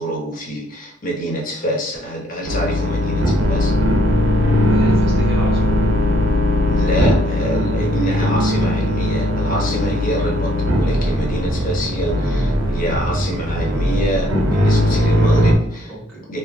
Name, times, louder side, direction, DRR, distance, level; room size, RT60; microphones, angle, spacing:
voice 1, 0.0-3.7 6.7-15.9 16.3-16.4, right 1 dB, 45° left, -1 dB, 0.8 m, -26 dB
sound 1, 2.4-15.5, left 1 dB, 85° right, 0.6 m, -18 dB
voice 2, 4.7-5.8 14.8-15.5 15.8-16.3, right 1 dB, ahead, -7 dB, 0.7 m, -32 dB
3.2 x 2.1 x 2.5 m, 0.73 s
head